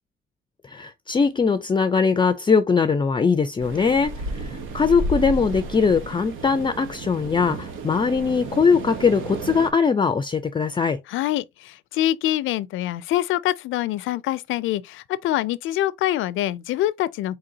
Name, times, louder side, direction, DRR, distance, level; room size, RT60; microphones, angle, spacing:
voice 1, 0.6-11.0, left 5 dB, 25° left, 0.4 m, -21 dB
sound 1, 3.6-9.7, right 3 dB, 90° right, 1.0 m, -32 dB
voice 2, 11.1-17.4, left 14 dB, 80° left, 0.5 m, -25 dB
4.2 x 3.8 x 2.7 m
cardioid pair, 90°, 20 cm